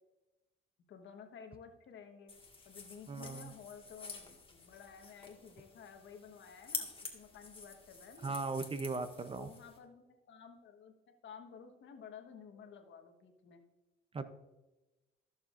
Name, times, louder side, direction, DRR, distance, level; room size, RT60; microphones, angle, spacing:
voice 1, 0.9-2.3 2.6-8.4 9.4-10.9 11.2-13.6, left 6 dB, 70° left, 5 dB, 1.3 m, -53 dB
sound 1, 2.3-9.8, left 4 dB, 25° left, 1.7 m, -48 dB
voice 2, 3.1-3.5 8.2-9.5 14.1-14.3, right 3 dB, 30° right, 11 dB, 0.6 m, -38 dB
14.0 x 7.1 x 2.5 m, 1.1 s
cardioid pair, 90°, 20 cm